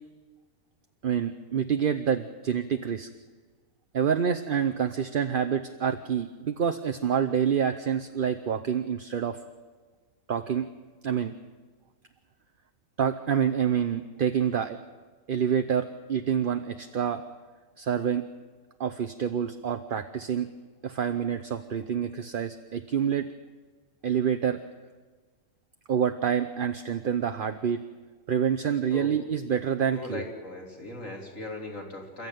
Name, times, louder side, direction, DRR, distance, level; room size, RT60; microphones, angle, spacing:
voice 1, 1.0-3.1 3.9-9.4 10.3-10.7 11.0-11.3 13.0-14.8 15.3-17.2 17.8-18.2 18.8-20.5 20.8-23.3 24.0-24.6 25.9-27.8 28.3-30.2, right 8 dB, 45° right, 7 dB, 0.8 m, -27 dB
voice 2, 29.9-32.3, left 2 dB, 55° left, 1 dB, 3.9 m, -38 dB
28.0 x 13.5 x 9.2 m, 1.4 s
omnidirectional pair, 1.6 m